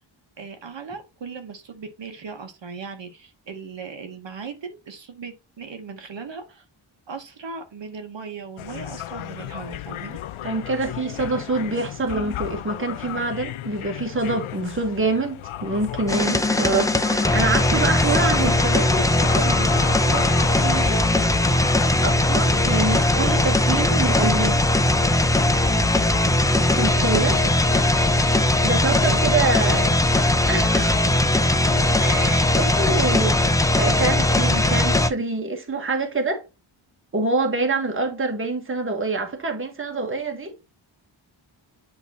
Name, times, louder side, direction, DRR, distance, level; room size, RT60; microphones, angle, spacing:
voice 1, 0.4-6.7 7.1-10.2 26.9-27.9 28.7-29.9 31.9-32.2 32.8-33.1, right 5 dB, 65° right, 1.0 m, -38 dB
sound 1, 8.6-21.9, left 12 dB, 85° left, 0.5 m, -34 dB
voice 2, 10.4-21.0 22.0-24.7 26.7-27.3 28.6-29.9 30.5-31.0 32.0-33.4 33.8-36.4 37.1-40.6, right 3 dB, 25° right, 1.2 m, -26 dB
sound 2, 16.1-35.1, left 1 dB, 10° left, 0.3 m, -19 dB
8.4 x 2.9 x 4.1 m
wide cardioid pair, 170°, 48 cm